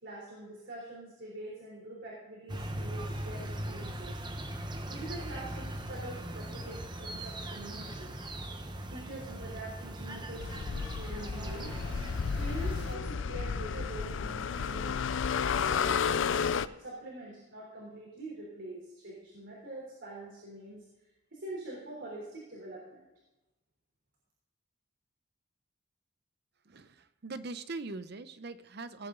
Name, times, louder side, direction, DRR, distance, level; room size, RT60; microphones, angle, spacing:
voice 1, 0.0-4.2 4.8-8.2 8.9-11.8 12.3-15.1 15.5-20.8 21.3-23.0, right 1 dB, 75° right, -5 dB, 3.5 m, -44 dB
sound 1, 2.5-13.0, right 1 dB, 25° right, 0.9 m, -40 dB
sound 2, 10.4-16.7, left 6 dB, 75° left, 0.4 m, -32 dB
voice 2, 26.6-29.1, right 3 dB, 55° right, 12 dB, 0.7 m, -42 dB
17.5 x 8.7 x 3.8 m, 1.0 s
head